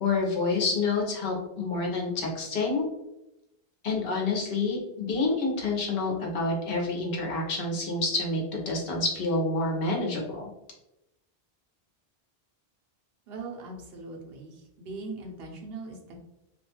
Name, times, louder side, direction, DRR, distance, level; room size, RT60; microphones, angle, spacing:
voice 1, 0.0-2.9 3.8-10.5, left 3 dB, 65° left, -1 dB, 0.9 m, -28 dB
voice 2, 13.3-16.2, right 3 dB, 75° right, 1 dB, 0.8 m, -40 dB
2.4 x 2.3 x 2.8 m, 0.90 s
omnidirectional pair, 1.1 m